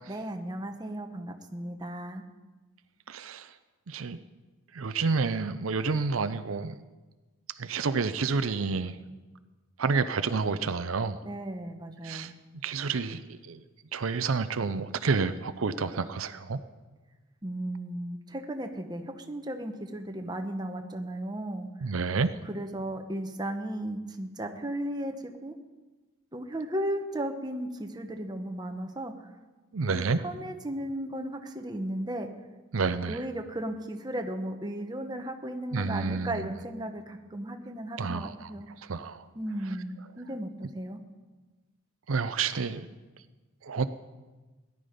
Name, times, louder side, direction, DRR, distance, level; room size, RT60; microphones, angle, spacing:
voice 1, 0.1-2.2 11.2-12.3 17.4-21.9 22.5-25.5 26.3-29.1 29.9-32.3 33.1-38.7 39.3-41.0, right 1 dB, 20° right, 5 dB, 1.0 m, -35 dB
voice 2, 3.1-3.5 3.9-4.2 4.7-6.8 7.6-9.0 9.8-11.2 12.0-12.3 12.6-13.6 13.9-16.6 21.8-22.3 29.7-30.2 32.7-33.2 35.7-36.5 38.0-38.5 38.9-39.2 42.1-42.9 43.6-43.8, right 4 dB, 85° right, 11 dB, 0.6 m, -29 dB
18.0 x 11.0 x 5.1 m, 1.2 s
head